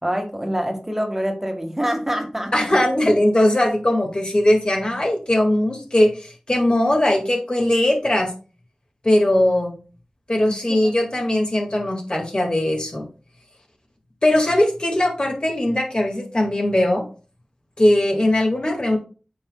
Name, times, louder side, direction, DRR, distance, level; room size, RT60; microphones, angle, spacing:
voice 1, 0.0-2.8 10.4-10.9 18.1-18.2, equal, 15° right, 3 dB, 1.5 m, -26 dB
voice 2, 2.5-8.3 9.0-9.7 10.3-13.1 14.2-17.0 17.8-19.0, left 1 dB, 45° left, 1 dB, 1.9 m, -19 dB
8.7 x 5.3 x 2.2 m, 0.36 s
wide cardioid pair, 50°, 2 cm